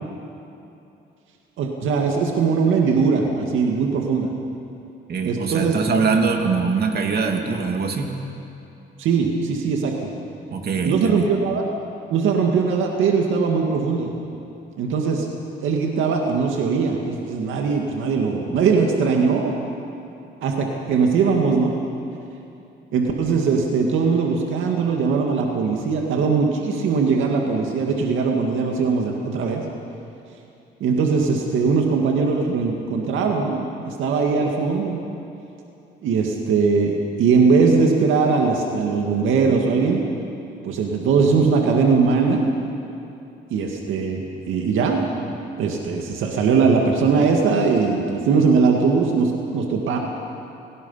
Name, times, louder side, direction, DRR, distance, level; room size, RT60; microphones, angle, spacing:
voice 1, 1.6-4.3 5.2-5.8 9.0-9.9 10.8-11.7 12.1-14.1 14.8-15.3 15.6-19.5 20.4-21.8 22.9-29.6 30.8-35.0 36.0-40.0 40.6-42.5 43.5-50.0, right 5 dB, 85° right, 1 dB, 2.2 m, -20 dB
voice 2, 5.1-8.1 10.5-11.3, right 5 dB, 55° right, 3 dB, 2.7 m, -22 dB
29.5 x 18.0 x 5.7 m, 2.8 s
cardioid pair, 90°, 20 cm